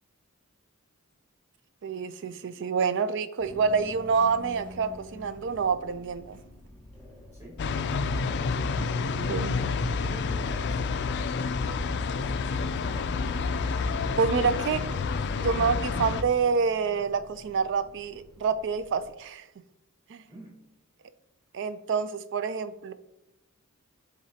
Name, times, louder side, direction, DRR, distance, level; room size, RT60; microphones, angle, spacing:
voice 1, 1.8-6.4 9.3-9.6 14.2-14.9 15.3-19.4 20.1-20.2 21.5-22.9, right 5 dB, 55° right, 12 dB, 0.4 m, -27 dB
sound 1, 3.4-19.1, left 1 dB, 10° left, 1.8 m, -48 dB
sound 2, 7.6-16.2, left 4 dB, 50° left, 0.3 m, -29 dB
voice 2, 8.4-9.4 10.0-11.0 20.3-20.5, right 1 dB, 15° right, -5 dB, 2.3 m, -45 dB
10.5 x 3.9 x 2.8 m, 0.87 s
head